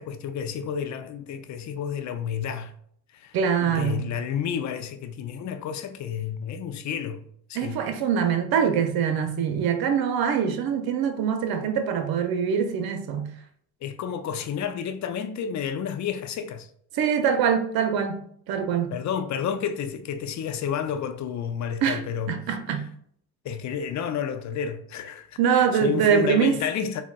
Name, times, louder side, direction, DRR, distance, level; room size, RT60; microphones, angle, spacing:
voice 1, 0.0-2.7 3.1-3.4 3.6-7.8 13.8-16.7 18.9-22.4 22.7-22.8 23.4-27.0, left 8 dB, 45° left, 0.4 m, -31 dB
voice 2, 3.3-4.1 7.6-13.3 16.9-18.9 21.8-22.0 22.3-22.8 25.4-26.6, right 7 dB, 60° right, 0.6 m, -24 dB
4.0 x 2.1 x 2.2 m
supercardioid pair, 60°, 41 cm